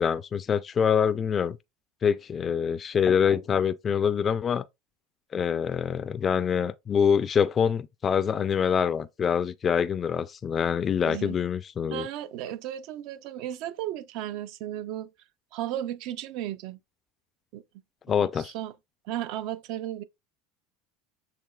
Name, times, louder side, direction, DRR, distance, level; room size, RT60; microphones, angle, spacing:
voice 1, 0.0-1.6 2.0-4.6 5.3-12.1 18.1-18.5, left 7 dB, 30° left, 0.3 m, -25 dB
voice 2, 11.0-11.4 11.9-15.1 15.5-16.8 17.5-17.6 18.2-18.7 19.1-20.0, right 12 dB, 60° right, 0.4 m, -34 dB
6.6 x 3.0 x 2.3 m
supercardioid pair, 120°, 0 cm